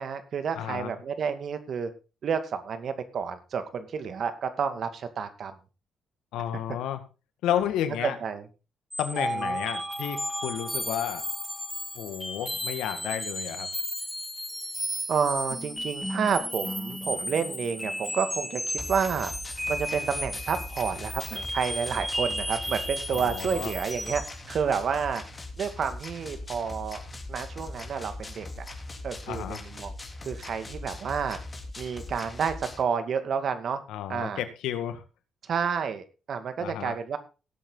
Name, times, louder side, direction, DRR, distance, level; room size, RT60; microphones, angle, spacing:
voice 1, 0.0-1.9 2.2-5.6 8.2-8.4 9.1-9.6 15.1-19.3 19.7-24.2 24.5-25.2 25.6-27.0 27.3-28.6 29.0-29.9 30.2-31.4 31.8-33.8 34.1-34.4 35.5-37.2, right 6 dB, 55° right, 9 dB, 2.2 m, -30 dB
voice 2, 0.6-0.9 6.3-7.0 7.4-8.2 9.0-11.2 11.9-13.7 23.1-23.7 29.3-29.6 33.9-35.0 36.6-36.9, left 10 dB, 90° left, 9 dB, 2.0 m, -31 dB
sound 1, 8.9-24.4, equal, 5° left, 2.8 m, -34 dB
sound 2, 18.8-32.8, left 2 dB, 25° left, 3.2 m, -40 dB
18.0 x 8.1 x 4.0 m, 0.31 s
cardioid pair, 90°, 0 cm